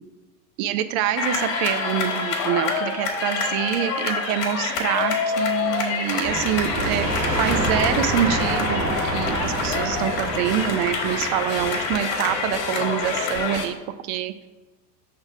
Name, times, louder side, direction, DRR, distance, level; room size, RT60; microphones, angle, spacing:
voice 1, 0.6-7.1 7.4-13.8 14.0-14.5, right 11 dB, 40° right, 11 dB, 0.6 m, -26 dB
sound 1, 1.2-13.7, left 4 dB, 55° left, 1.5 m, -26 dB
sound 2, 6.2-11.8, right 1 dB, 80° right, 1.7 m, -27 dB
5.6 x 3.5 x 5.4 m, 1.1 s
figure-of-eight pair, 85°, 48 cm